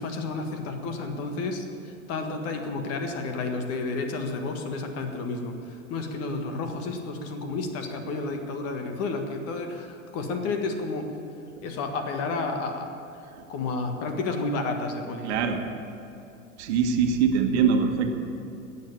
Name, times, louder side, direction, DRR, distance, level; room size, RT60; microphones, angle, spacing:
voice 1, 0.0-11.1 11.6-12.9 13.5-15.5, left 3 dB, 35° left, 5 dB, 1.7 m, -31 dB
voice 2, 15.2-15.6 16.6-18.2, right 6 dB, 50° right, 4 dB, 1.6 m, -23 dB
17.5 x 7.1 x 8.7 m, 2.7 s
figure-of-eight pair, 90°, 41 cm